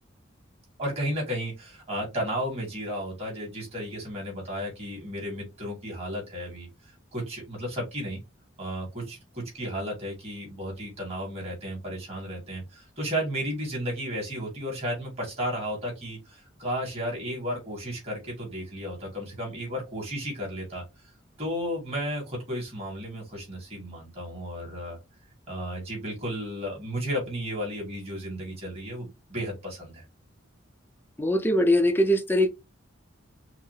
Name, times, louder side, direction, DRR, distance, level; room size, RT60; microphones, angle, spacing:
voice 1, 0.8-8.2 8.6-20.8 21.4-25.0 25.5-30.0, equal, 30° right, 2.5 m, -33 dB
voice 2, 31.2-32.5, equal, 10° left, 0.6 m, -21 dB
5.6 x 2.1 x 3.3 m
head